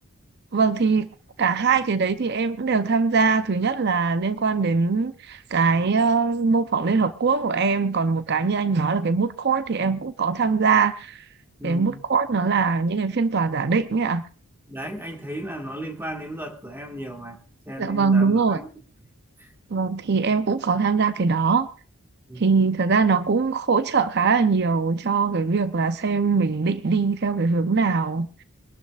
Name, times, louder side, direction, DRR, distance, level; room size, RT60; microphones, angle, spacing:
voice 1, 0.5-1.1 1.4-11.2 11.6-14.2 17.8-18.6 19.7-21.7 22.4-28.3, right 4 dB, 50° right, 0.6 m, -22 dB
voice 2, 11.6-12.0 14.7-18.7 19.4-19.5 22.3-22.6, equal, 10° right, 1.8 m, -35 dB
25.0 x 12.0 x 2.4 m
head